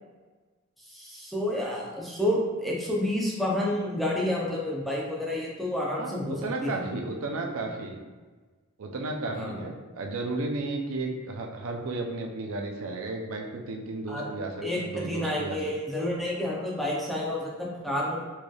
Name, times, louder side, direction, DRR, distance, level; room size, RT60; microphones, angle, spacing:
voice 1, 0.8-6.7 9.3-9.5 14.1-14.2 14.6-18.2, left 1 dB, ahead, -4 dB, 0.6 m, -29 dB
voice 2, 6.0-8.0 8.8-15.6, right 2 dB, 70° right, 1 dB, 0.5 m, -33 dB
4.4 x 3.1 x 2.3 m, 1.3 s
head